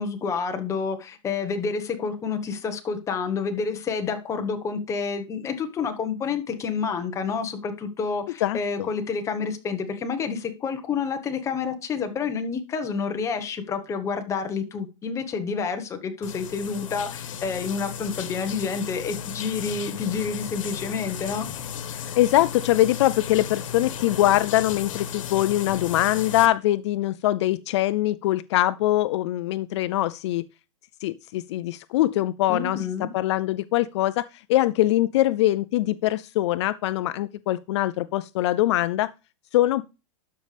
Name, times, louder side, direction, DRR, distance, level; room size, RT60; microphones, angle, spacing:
voice 1, 0.0-21.5 32.5-33.1, left 5 dB, 20° left, 1.2 m, -29 dB
voice 2, 8.4-8.9 22.2-30.4 31.0-39.1 39.5-39.8, left 15 dB, 60° left, 0.4 m, -23 dB
sound 1, 16.2-26.5, left 8 dB, 85° left, 1.4 m, -35 dB
12.0 x 5.5 x 3.3 m
supercardioid pair, 155°, 16 cm